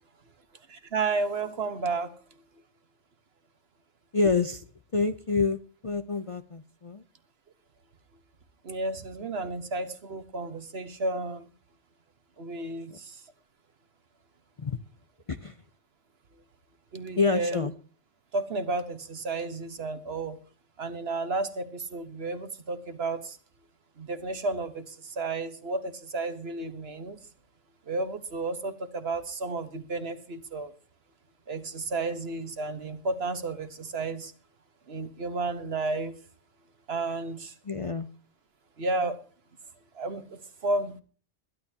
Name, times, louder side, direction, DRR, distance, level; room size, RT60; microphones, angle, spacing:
voice 1, 0.7-2.1 8.6-11.5 12.4-13.2 16.9-17.7 18.3-20.4 20.8-23.4 24.0-27.2 27.9-30.7 31.5-34.3 34.9-36.2 36.9-37.5 38.8-39.2 39.9-41.0, right 3 dB, 60° right, 10 dB, 1.5 m, -32 dB
voice 2, 4.1-4.6 4.9-7.0 12.9-13.0 14.6-14.8 15.3-15.5 17.2-17.7 37.7-38.1, left 4 dB, 35° left, 9 dB, 0.6 m, -27 dB
22.5 x 11.0 x 2.8 m, 0.39 s
omnidirectional pair, 1.2 m